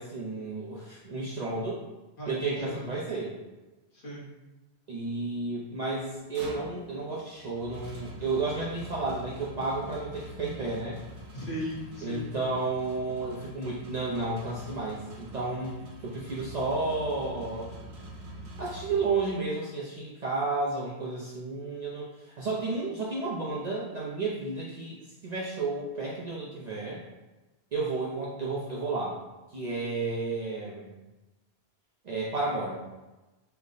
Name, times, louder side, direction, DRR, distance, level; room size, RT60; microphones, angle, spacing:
voice 1, 0.0-1.8 2.3-3.4 4.9-11.0 12.0-15.8 16.0-17.7 18.6-22.1 22.4-25.0 25.2-27.0 27.7-29.2 29.5-30.9 32.0-32.8, right 3 dB, 50° right, -5 dB, 0.5 m, -32 dB
voice 2, 2.2-2.9 3.9-4.3 11.3-12.3, equal, 55° left, -7 dB, 1.2 m, -37 dB
sound 1, 6.2-19.5, right 1 dB, 85° right, 1.1 m, -45 dB
3.3 x 2.1 x 3.8 m, 1.1 s
omnidirectional pair, 1.1 m